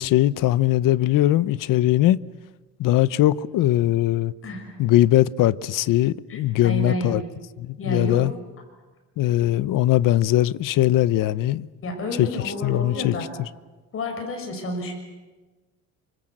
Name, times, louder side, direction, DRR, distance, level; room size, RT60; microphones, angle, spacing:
voice 1, 0.0-2.2 2.8-4.3 4.8-7.2 7.6-8.3 9.2-11.7 12.2-12.3 12.6-13.1, left 14 dB, 70° left, 0.8 m, -20 dB
voice 2, 4.4-4.8 6.3-7.2 7.8-8.2 11.8-13.3 13.9-14.9, left 1 dB, 40° left, 6.4 m, -30 dB
28.0 x 25.5 x 7.9 m
cardioid pair, 165°, 34 cm